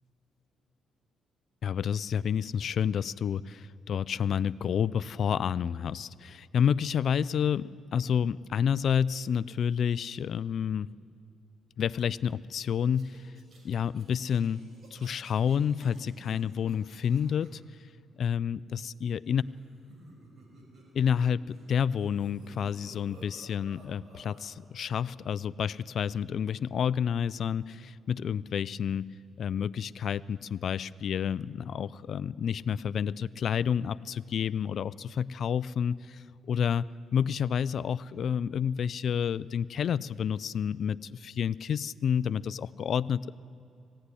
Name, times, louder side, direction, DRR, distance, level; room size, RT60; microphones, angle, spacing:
voice 1, 1.6-10.9 11.8-13.3 13.6-14.6 14.9-17.6 18.2-19.4 20.9-29.1 29.4-43.3, left 8 dB, 60° left, 18 dB, 0.4 m, -29 dB
sound 1, 12.9-17.5 19.4-21.7 21.9-24.4, right 1 dB, 55° right, 5.7 m, -54 dB
19.5 x 16.0 x 9.9 m, 2.7 s
cardioid pair, 90°, 0 cm